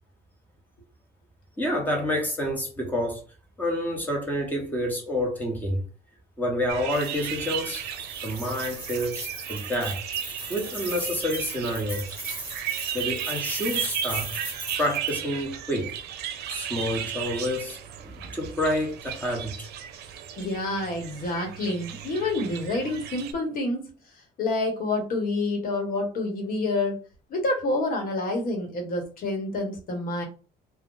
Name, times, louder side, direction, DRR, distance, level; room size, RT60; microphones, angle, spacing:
voice 1, 1.6-3.2 3.6-5.8 6.4-7.8 8.2-10.0 10.5-12.2 12.9-14.3 14.7-15.9 16.5-19.7, equal, 10° left, 1.1 m, -28 dB
sound 1, 6.7-23.3, right 9 dB, 75° right, 0.5 m, -35 dB
sound 2, 6.9-15.2, right 2 dB, 10° right, 1.1 m, -38 dB
voice 2, 20.4-23.8 24.4-27.0 27.3-30.2, left 2 dB, 55° left, 1.2 m, -28 dB
2.5 x 2.3 x 3.8 m
cardioid pair, 110°, 17 cm